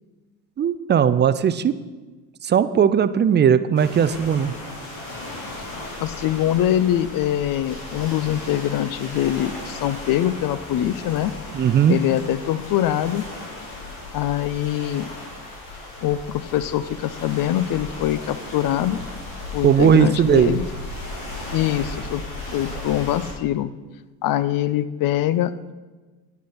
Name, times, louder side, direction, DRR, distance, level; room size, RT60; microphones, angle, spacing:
voice 1, 0.6-1.7 2.4-4.5 11.5-12.0 19.6-20.6, right 8 dB, 25° right, 13 dB, 0.4 m, -18 dB
sound 1, 3.7-23.3, left 2 dB, 70° left, 3.3 m, -36 dB
voice 2, 6.0-11.3 11.9-13.3 14.1-15.1 16.0-19.0 19.5-20.7 21.5-22.2 22.5-23.7 24.2-25.7, left 12 dB, 50° left, 15 dB, 0.6 m, -23 dB
9.5 x 9.4 x 4.2 m, 1.3 s
supercardioid pair, 80°, 43 cm